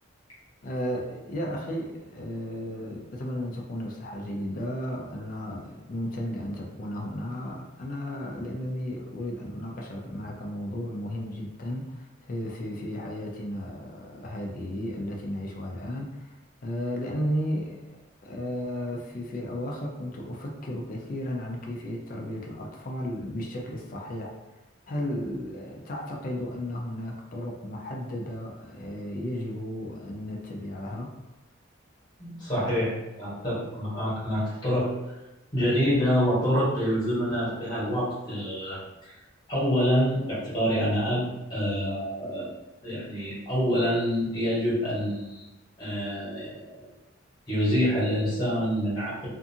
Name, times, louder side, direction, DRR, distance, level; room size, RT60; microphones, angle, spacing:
voice 1, 0.6-17.8 18.2-24.3 24.9-31.1, left 1 dB, 40° left, -1 dB, 0.4 m, -34 dB
voice 2, 32.2-34.9 35.5-38.8 39.5-41.2 41.5-42.5 42.8-45.5 45.8-46.8 47.5-49.3, equal, 20° left, -9 dB, 1.1 m, -26 dB
2.5 x 2.4 x 2.7 m, 0.99 s
head